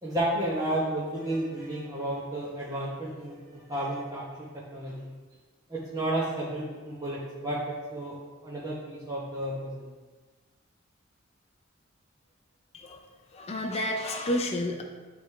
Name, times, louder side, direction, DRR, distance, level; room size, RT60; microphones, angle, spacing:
voice 1, 0.0-5.1 5.7-9.9, right 1 dB, 20° right, -7 dB, 0.9 m, -32 dB
voice 2, 12.7-13.1 13.3-14.8, left 1 dB, 30° left, 2 dB, 0.5 m, -30 dB
9.8 x 3.4 x 3.2 m, 1.3 s
head